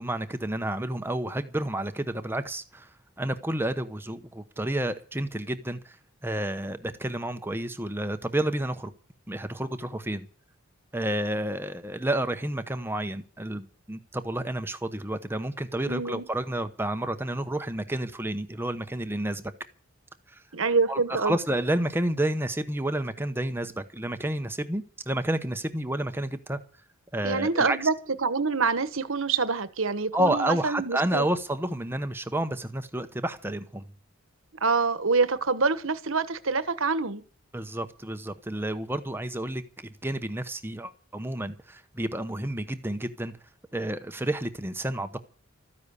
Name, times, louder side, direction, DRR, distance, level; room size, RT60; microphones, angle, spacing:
voice 1, 0.0-2.9 3.2-6.0 6.2-8.9 9.3-10.3 10.9-19.5 20.3-20.4 20.9-26.6 27.1-27.9 30.1-33.8 37.5-39.6 40.0-43.3 43.7-45.2, right 1 dB, 10° right, 0.9 m, -30 dB
voice 2, 15.9-16.2 20.5-21.3 27.2-27.9 28.2-31.3 34.6-37.2, right 4 dB, 70° right, 1.4 m, -26 dB
14.0 x 10.5 x 8.3 m
head